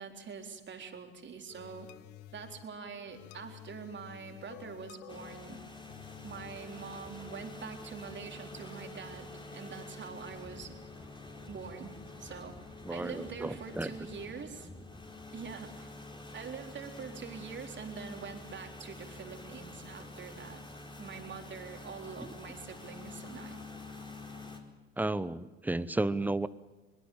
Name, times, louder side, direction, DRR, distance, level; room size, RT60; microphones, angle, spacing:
voice 1, 0.0-1.9 2.3-5.6 6.2-10.8 11.5-12.6 12.9-14.7 15.3-15.9 16.3-20.6 21.0-23.6, right 5 dB, 35° right, 4 dB, 4.0 m, -44 dB
sound 1, 1.5-10.1, left 13 dB, 65° left, 1.1 m, -54 dB
sound 2, 5.1-24.6, left 2 dB, 15° left, 4.4 m, -47 dB
voice 2, 12.8-13.9 22.2-22.3 25.0-26.5, right 2 dB, 5° right, 17 dB, 1.0 m, -33 dB
23.5 x 22.0 x 7.3 m, 1.2 s
hypercardioid pair, 65°, 31 cm